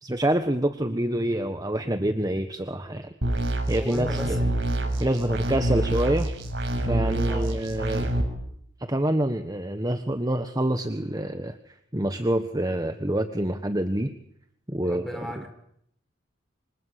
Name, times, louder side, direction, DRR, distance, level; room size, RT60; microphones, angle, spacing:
voice 1, 0.0-3.1 3.7-4.5 5.0-6.3 6.8-8.1 8.9-14.1 14.7-15.5, right 1 dB, 20° right, 8 dB, 1.3 m, -27 dB
sound 1, 3.2-8.2, right 1 dB, 85° right, 6.7 m, -27 dB
voice 2, 3.8-4.5 4.8-5.0 5.8-5.9 7.2-7.5 14.9-15.5, left 1 dB, ahead, 5 dB, 5.4 m, -36 dB
27.5 x 26.0 x 8.3 m, 0.74 s
head